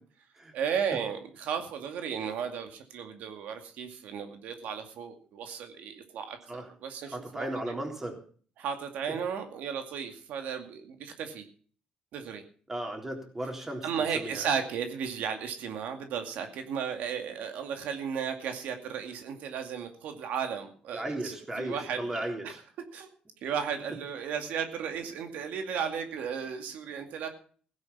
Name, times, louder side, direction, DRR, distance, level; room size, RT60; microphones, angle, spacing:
voice 1, 0.5-7.7 8.6-11.5 12.1-12.4 13.8-22.6 22.9-23.1 23.4-27.3, right 7 dB, 85° right, 5 dB, 2.3 m, -35 dB
voice 2, 7.0-8.2 12.7-14.5 20.9-22.6, right 1 dB, 15° right, 2 dB, 3.6 m, -36 dB
16.5 x 9.8 x 5.6 m, 0.43 s
cardioid pair, 155°, 3 cm